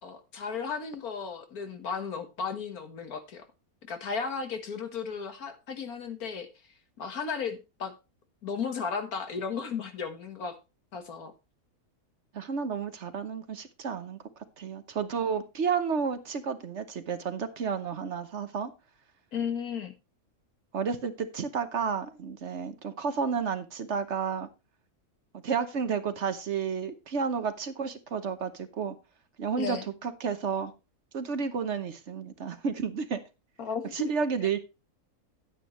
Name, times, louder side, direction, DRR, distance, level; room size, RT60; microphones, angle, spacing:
voice 1, 0.0-3.4 3.9-6.5 7.0-7.9 8.4-10.6 10.9-11.3 19.3-19.9 29.6-29.9 33.6-34.1, left 5 dB, 80° left, 7 dB, 2.0 m, -34 dB
voice 2, 12.3-14.2 14.6-18.7 20.7-24.5 25.4-28.9 29.4-29.8 30.0-30.7 31.1-33.2 33.9-34.6, right 6 dB, 55° right, 11 dB, 1.2 m, -31 dB
10.5 x 9.4 x 3.1 m, 0.27 s
omnidirectional pair, 1.5 m